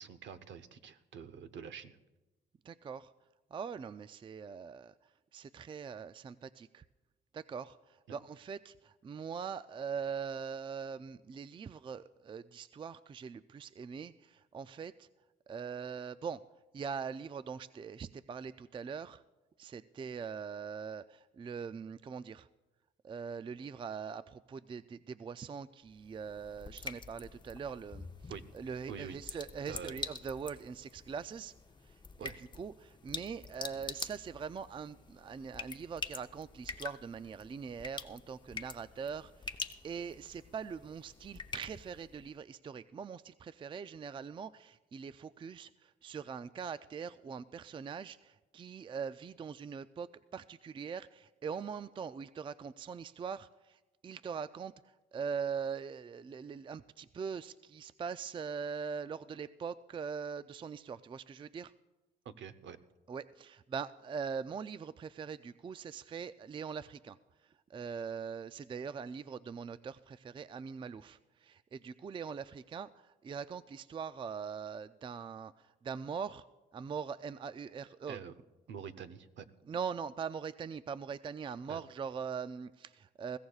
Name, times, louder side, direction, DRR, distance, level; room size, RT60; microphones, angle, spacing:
voice 1, 0.0-2.0 28.3-28.4 28.9-29.4 29.7-30.0 32.2-32.4 62.2-62.8 78.1-78.3 78.7-79.5 81.7-81.8, right 7 dB, 65° right, 11 dB, 0.9 m, -46 dB
voice 2, 2.7-3.1 3.5-4.9 5.3-6.8 7.3-7.8 8.1-15.1 15.5-16.4 16.7-19.2 19.6-22.5 23.0-31.5 32.2-54.7 55.1-61.7 63.1-67.2 67.7-76.4 76.7-78.2 79.7-83.4, right 6 dB, 25° right, 14 dB, 0.3 m, -42 dB
sound 1, 25.9-42.3, left 4 dB, 20° left, 0.7 m, -46 dB
21.0 x 16.0 x 2.4 m, 1.1 s
cardioid pair, 90°, 20 cm